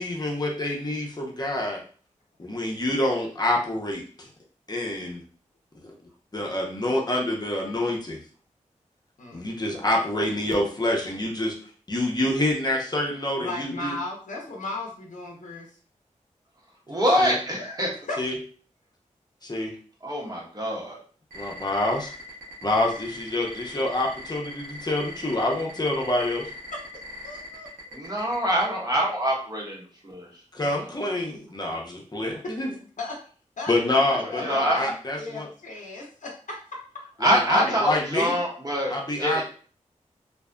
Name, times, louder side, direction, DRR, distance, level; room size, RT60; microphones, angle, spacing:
voice 1, 0.0-1.8 2.4-4.3 4.7-5.2 5.8-5.9 6.3-8.2 9.3-11.5 11.9-13.9 17.2-17.3 18.2-18.4 19.4-19.7 21.3-22.1 22.6-26.5 30.5-32.7 33.7-35.5 37.2-38.3 38.9-39.4, left 1 dB, 30° left, -1 dB, 0.7 m, -27 dB
voice 2, 13.4-15.7 18.1-18.2 26.7-26.8 27.2-27.7 33.0-33.2 33.6-34.0 34.3-36.8 37.7-37.8, left 2 dB, 70° left, -1 dB, 0.7 m, -36 dB
voice 3, 16.9-17.9 20.0-21.0 27.9-30.3 34.4-34.8 37.2-38.9 39.2-39.4, equal, 30° right, -3 dB, 1.0 m, -25 dB
sound 1, 21.3-28.6, left 2 dB, 70° right, 1.0 m, -40 dB
2.6 x 2.4 x 2.2 m, 0.42 s
cardioid pair, 45°, 14 cm